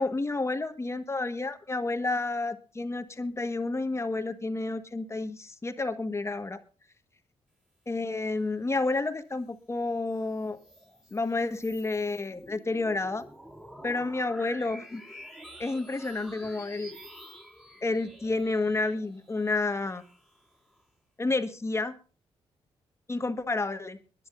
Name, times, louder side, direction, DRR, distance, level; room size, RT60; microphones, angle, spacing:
voice 1, 0.0-6.6 7.9-10.6 11.1-13.2 13.8-15.0 15.6-17.0 17.8-20.0 21.2-21.9 23.1-24.0, left 3 dB, 25° left, 9 dB, 1.4 m, -30 dB
sound 1, 9.9-20.8, equal, 5° right, 3.2 m, -49 dB
23.0 x 10.5 x 2.5 m, 0.34 s
cardioid pair, 70°, 11 cm